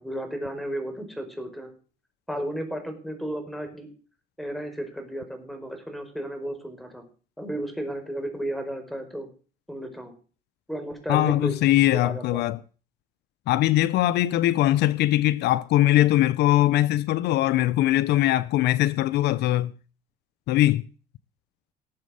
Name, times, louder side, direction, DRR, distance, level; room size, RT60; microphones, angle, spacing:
voice 1, 0.0-1.7 2.3-3.9 4.4-7.0 7.4-9.3 9.7-10.1 10.7-11.6 11.9-12.4, right 1 dB, ahead, 4.8 m, -33 dB
voice 2, 11.1-12.6 13.5-19.7 20.5-20.9, left 14 dB, 80° left, 0.7 m, -21 dB
19.0 x 7.5 x 6.4 m
cardioid pair, 110°, 17 cm